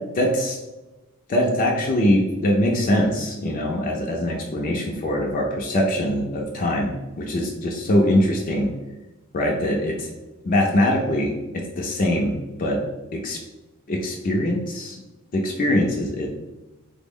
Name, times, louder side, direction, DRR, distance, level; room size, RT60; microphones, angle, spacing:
voice 1, 0.2-0.6 1.3-8.7 9.3-10.1 10.4-12.3 12.6-12.8 13.1-13.4 13.9-15.0 15.3-16.3, left 1 dB, 40° left, 0 dB, 0.4 m, -22 dB
3.3 x 2.0 x 3.6 m, 1.1 s
head